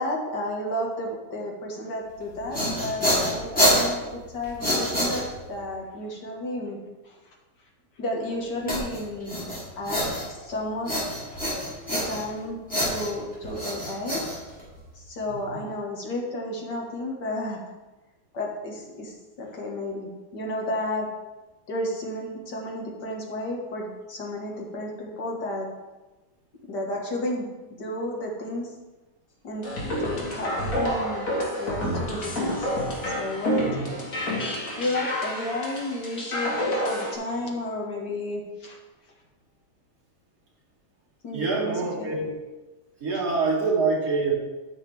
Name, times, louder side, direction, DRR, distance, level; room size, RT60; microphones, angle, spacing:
voice 1, 0.0-6.8 7.1-7.2 8.0-11.4 11.6-14.2 15.1-17.6 18.3-21.1 21.7-25.7 26.7-28.7 29.4-31.3 31.6-32.7 33.1-33.9 34.7-38.8 41.2-42.1, left 1 dB, 80° left, -1 dB, 2.3 m, -32 dB
sound 1, 2.2-5.6 8.7-10.5 10.8-12.4 12.7-14.9, equal, 5° left, 3.2 m, -26 dB
voice 2, 15.3-15.6 33.6-33.9 41.3-42.3 43.0-44.3, right 3 dB, 55° right, -6 dB, 2.9 m, -26 dB
sound 2, 29.6-37.1, equal, 50° left, 2.2 m, -29 dB
13.0 x 6.0 x 3.5 m, 1.2 s
omnidirectional pair, 1.8 m